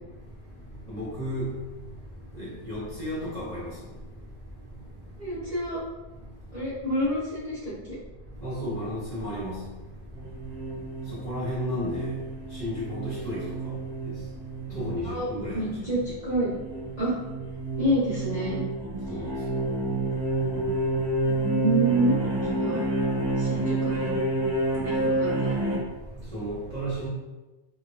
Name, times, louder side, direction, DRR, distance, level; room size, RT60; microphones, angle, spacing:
voice 1, 0.9-1.5 2.4-3.7 8.4-9.6 11.1-12.1 12.6-13.5 14.7-15.7 19.1-19.3 26.3-27.1, equal, 45° left, -10 dB, 0.5 m, -32 dB
voice 2, 5.2-5.8 6.5-7.8 15.0-15.3 15.5-16.5 17.0-17.1 17.8-18.6 21.2-22.2 22.4-22.8 23.4-24.1 24.8-25.5, right 1 dB, 35° right, -12 dB, 0.8 m, -28 dB
sound 1, 10.2-25.8, right 2 dB, 60° right, 1.0 m, -29 dB
3.0 x 2.2 x 2.5 m, 1.1 s
omnidirectional pair, 2.0 m